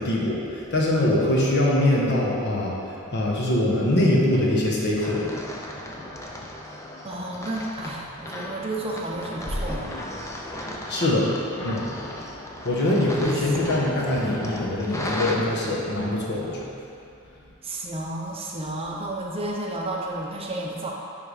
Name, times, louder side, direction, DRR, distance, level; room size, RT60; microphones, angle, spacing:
voice 1, 0.0-2.7 3.1-5.3 10.9-11.9 12.6-16.6, left 1 dB, 50° left, -4 dB, 1.3 m, -23 dB
sound 1, 5.0-15.4, left 1 dB, 15° left, 0.6 m, -35 dB
voice 2, 7.0-9.9 17.6-20.9, right 1 dB, 25° right, -2 dB, 0.7 m, -32 dB
10.5 x 3.6 x 4.9 m, 2.6 s
head